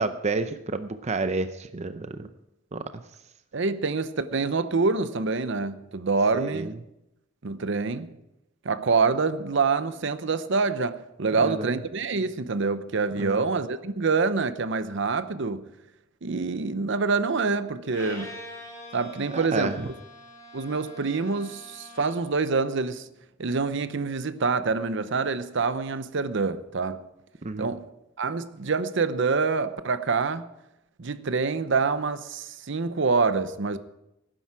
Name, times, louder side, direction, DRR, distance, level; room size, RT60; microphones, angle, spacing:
voice 1, 0.0-2.3 2.7-3.0 6.3-6.7 11.4-11.7 13.2-13.4 16.2-16.3 19.3-19.9 27.4-27.7, right 3 dB, 35° right, 0.6 m, -30 dB
voice 2, 3.5-6.8 7.4-8.1 8.6-15.7 16.2-18.4 18.9-19.9 20.5-23.1 23.4-27.0 27.6-27.9 28.2-30.5 31.0-33.8, right 4 dB, 65° right, 0.7 m, -26 dB
Bowed string instrument, 17.9-22.4, left 1 dB, 15° left, 6.0 m, -44 dB
18.0 x 10.0 x 4.8 m
head